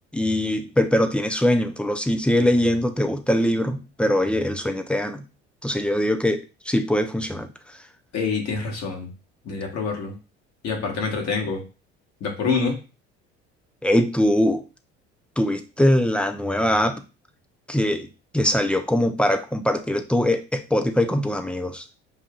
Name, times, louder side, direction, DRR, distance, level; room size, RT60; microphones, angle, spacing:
voice 1, 0.1-5.2 5.6-7.5 13.8-14.6 15.4-17.0 17.7-18.1 18.3-22.0, left 1 dB, 5° left, 8 dB, 0.4 m, -22 dB
voice 2, 8.1-9.1 9.4-10.2 10.6-11.6 12.2-12.8, left 4 dB, 55° left, 1 dB, 1.4 m, -26 dB
5.5 x 2.5 x 2.4 m, 0.31 s
hypercardioid pair, 65°, 32 cm